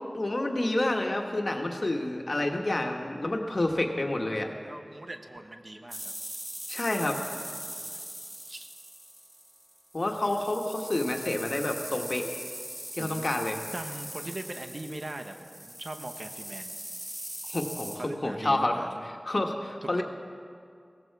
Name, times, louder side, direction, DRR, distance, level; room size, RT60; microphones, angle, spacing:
voice 1, 0.0-4.5 6.7-7.2 9.9-12.3 13.0-13.6 17.5-18.8 19.3-20.0, left 1 dB, 60° left, 2 dB, 1.4 m, -29 dB
voice 2, 4.6-6.1 7.8-8.0 8.3-8.7 13.0-13.3 13.7-16.7 18.0-18.9 19.9-20.0, right 1 dB, 60° right, 5 dB, 1.0 m, -40 dB
sound 1, 5.9-18.0, equal, 40° right, 3.4 m, -41 dB
17.0 x 15.0 x 4.8 m, 2.2 s
wide cardioid pair, 55°, 0 cm